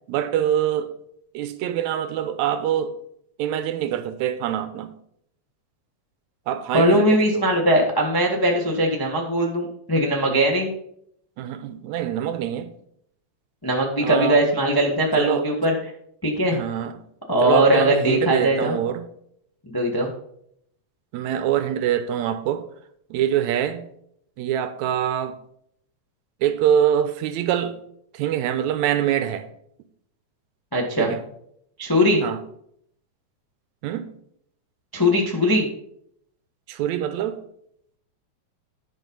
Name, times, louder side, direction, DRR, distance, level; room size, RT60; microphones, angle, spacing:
voice 1, 0.1-0.9 1.3-3.0 3.4-4.9 6.5-7.5 11.4-12.7 14.0-14.5 15.2-15.5 16.5-17.0 17.4-19.1 21.1-22.7 23.1-23.9 24.4-25.4 26.4-27.8 28.1-29.5 31.0-31.2 32.2-32.4 33.8-34.1 36.7-37.4, right 10 dB, 80° right, 2.0 m, -24 dB
voice 2, 6.7-10.7 13.6-15.7 16.2-16.6 17.3-18.8 19.7-20.1 30.7-31.1 31.8-32.2 34.9-35.7, equal, 30° left, 0.4 m, -20 dB
11.0 x 5.4 x 5.4 m
omnidirectional pair, 3.4 m